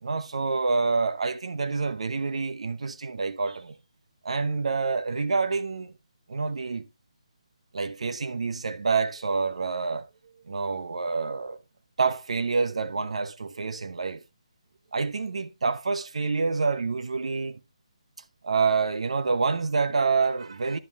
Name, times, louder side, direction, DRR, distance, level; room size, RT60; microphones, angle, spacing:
voice 1, 0.0-3.8 4.2-5.9 6.3-6.9 7.7-10.1 10.5-11.6 12.0-14.2 14.9-17.6 18.4-20.8, right 4 dB, 70° right, 0.9 m, -27 dB
11.0 x 10.0 x 2.3 m
figure-of-eight pair, 155°, 3 cm